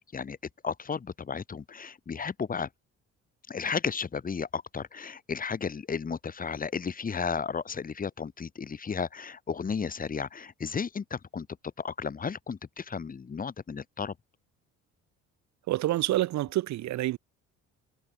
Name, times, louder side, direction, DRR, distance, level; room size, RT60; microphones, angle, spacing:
voice 1, 0.6-2.7 3.5-11.5 11.8-14.1, left 6 dB, 30° left, 1.5 m, -33 dB
voice 2, 15.7-17.2, right 15 dB, 65° right, 1.2 m, -27 dB
cardioid pair, 90°, 30 cm